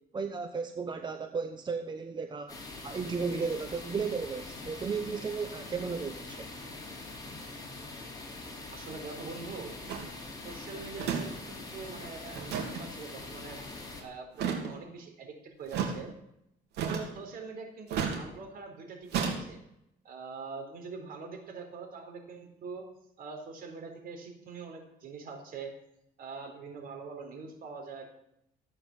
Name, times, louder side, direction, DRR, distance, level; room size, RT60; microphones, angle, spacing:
voice 1, 0.1-6.5, right 5 dB, 25° right, 7 dB, 1.0 m, -34 dB
sound 1, 2.5-14.0, left 2 dB, 20° left, 4.2 m, -43 dB
voice 2, 8.7-10.1 10.4-13.6 14.0-16.1 16.8-19.6 20.0-22.8 23.2-25.7 26.2-28.0, right 4 dB, 60° right, 3 dB, 4.0 m, -43 dB
sound 2, 9.9-10.1 11.0-11.3 11.5-11.6 12.3-12.8 14.3-14.7 15.7-15.9 16.8-17.2 17.9-18.2 19.1-19.4, right 7 dB, 80° right, 2.9 m, -31 dB
14.5 x 8.8 x 7.2 m, 0.79 s
cardioid pair, 110°, 17 cm